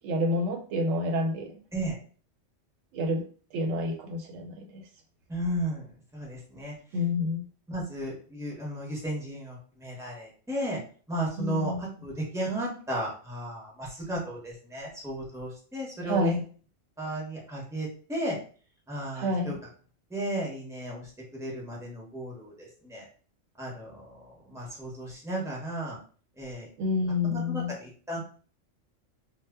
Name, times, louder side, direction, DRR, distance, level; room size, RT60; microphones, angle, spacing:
voice 1, 0.0-1.6 2.9-3.2 3.5-4.8 6.9-7.4 11.4-11.8 16.0-16.4 19.1-19.6 26.8-27.7, left 2 dB, 85° right, 3 dB, 1.0 m, -28 dB
voice 2, 5.3-5.8 6.1-6.7 7.7-10.8 11.1-16.4 17.0-18.4 18.9-19.6 20.1-23.1 23.6-26.0 26.4-26.7 27.2-28.2, right 1 dB, 5° right, -3 dB, 0.5 m, -34 dB
2.1 x 2.0 x 3.4 m, 0.41 s
omnidirectional pair, 1.3 m